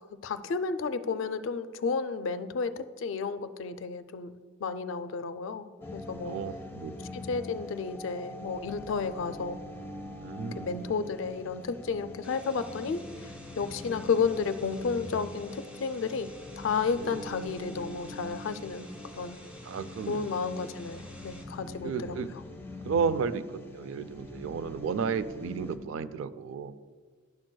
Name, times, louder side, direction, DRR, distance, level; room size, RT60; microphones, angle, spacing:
voice 1, 0.2-6.4 7.1-9.6 10.5-13.0 13.6-18.9 19.1-19.4 20.1-22.2, left 5 dB, 70° left, 12 dB, 0.4 m, -32 dB
sound 1, 5.8-25.8, left 2 dB, 10° left, 0.6 m, -44 dB
voice 2, 6.3-7.1 10.2-10.8 16.9-17.2 19.7-20.3 21.8-22.3 22.8-26.7, right 6 dB, 75° right, 14 dB, 0.3 m, -33 dB
sound 2, 12.2-21.4, equal, 5° right, 1.2 m, -52 dB
10.5 x 6.1 x 2.2 m, 1.5 s
head